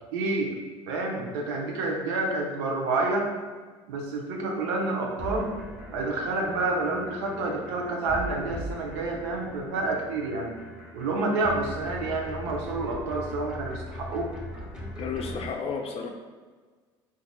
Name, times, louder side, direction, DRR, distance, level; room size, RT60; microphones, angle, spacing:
voice 1, 0.1-0.5 0.9-3.3 3.9-5.5 5.9-10.5 10.9-14.3, right 2 dB, 80° right, 0 dB, 0.6 m, -29 dB
sound 1, 5.2-15.5, left 1 dB, 5° right, 1.0 m, -40 dB
voice 2, 15.0-16.1, left 5 dB, 45° left, 3 dB, 0.5 m, -32 dB
3.9 x 2.5 x 2.2 m, 1.4 s
hypercardioid pair, 75°, 14 cm